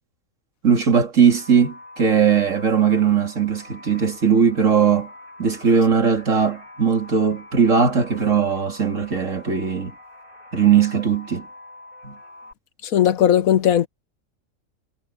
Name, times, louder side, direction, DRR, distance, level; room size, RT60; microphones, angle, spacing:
voice 1, 0.6-5.1 5.4-9.9 10.5-11.5 12.0-12.2, right 6 dB, 65° right, 3.0 m, -19 dB
sound 1, 1.3-12.5, left 1 dB, 85° right, 6.8 m, -44 dB
voice 2, 12.8-13.9, left 10 dB, 85° left, 1.3 m, -17 dB
omnidirectional pair, 1.4 m